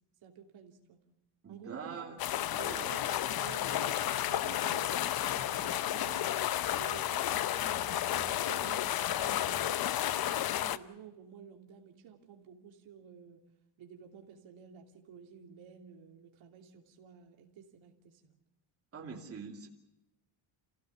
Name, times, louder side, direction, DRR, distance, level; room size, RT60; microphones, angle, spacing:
voice 1, 0.2-1.0 1.5-2.2 2.6-6.4 6.7-13.4 13.8-18.3, right 8 dB, 80° right, 1 dB, 3.1 m, -52 dB
voice 2, 1.4-2.2 2.5-3.0 18.9-19.7, right 5 dB, 30° right, 0 dB, 2.7 m, -44 dB
sound 1, 2.2-10.8, left 12 dB, 50° left, 0.8 m, -32 dB
29.0 x 16.0 x 6.8 m, 0.91 s
cardioid pair, 160°, 47 cm